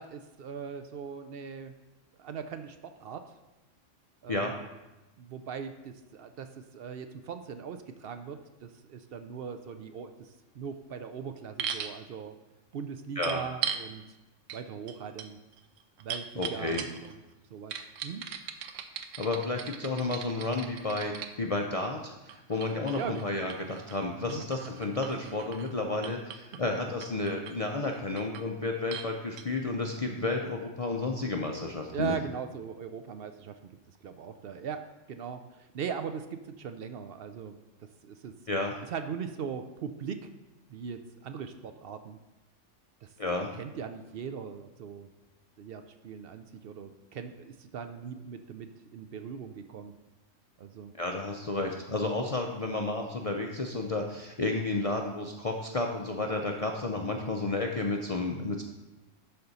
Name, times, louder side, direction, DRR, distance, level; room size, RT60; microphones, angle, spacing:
voice 1, 0.0-1.7 2.2-3.3 4.2-4.6 5.2-10.3 10.5-12.4 12.7-14.0 14.5-15.4 16.0-17.2 17.5-18.2 23.0-23.2 24.3-24.4 30.2-30.3 31.9-34.8 35.1-37.5 38.0-38.3 38.9-40.3 40.7-42.2 43.0-43.1 43.5-45.1 45.6-49.9 50.6-50.9, right 7 dB, 60° right, 8 dB, 0.6 m, -40 dB
sound 1, 11.6-12.0 13.2-13.9 14.5-14.6 14.9-17.1 17.7-21.3 22.3-25.7 26.0-26.6 27.0-27.6 27.9-28.5 28.9-29.1 29.4-29.5, right 8 dB, 75° right, 1.0 m, -39 dB
voice 2, 16.4-16.8 19.2-32.2 38.5-38.7 43.2-43.5 50.9-58.6, left 2 dB, 45° left, 1 dB, 0.4 m, -31 dB
11.5 x 4.3 x 4.0 m, 1.0 s
omnidirectional pair, 1.3 m